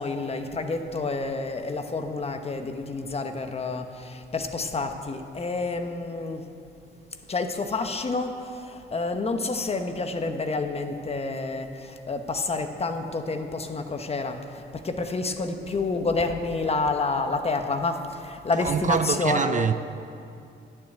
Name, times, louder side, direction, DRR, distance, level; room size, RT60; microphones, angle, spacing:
voice 1, 0.0-6.4 7.3-19.7, left 3 dB, 30° left, 1.2 m, -29 dB
voice 2, 18.6-19.7, right 7 dB, 40° right, 0.5 m, -25 dB
12.0 x 7.5 x 9.1 m
cardioid pair, 90°, 20 cm